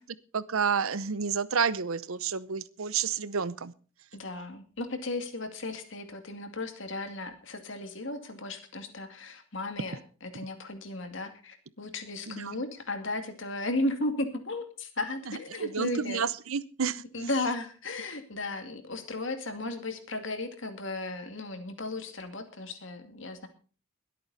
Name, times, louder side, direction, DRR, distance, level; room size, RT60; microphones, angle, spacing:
voice 1, 0.3-3.7 12.3-12.6 15.3-17.0, right 6 dB, 80° right, 18 dB, 0.8 m, -30 dB
voice 2, 4.1-16.3 17.1-23.5, left 2 dB, 60° left, 7 dB, 2.4 m, -35 dB
21.5 x 8.6 x 4.2 m, 0.38 s
head